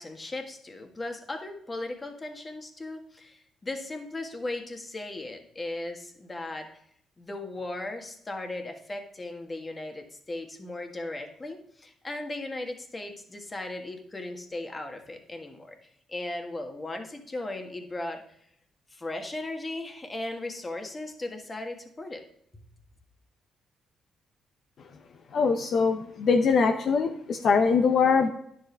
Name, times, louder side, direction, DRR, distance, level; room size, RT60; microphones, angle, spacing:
voice 1, 0.0-6.7 7.2-15.8 16.1-18.2 18.9-22.2, left 2 dB, 25° left, 4 dB, 1.7 m, -37 dB
voice 2, 25.3-28.3, left 5 dB, 60° left, 5 dB, 0.8 m, -22 dB
10.0 x 7.5 x 3.4 m, 0.69 s
cardioid pair, 90°, 0 cm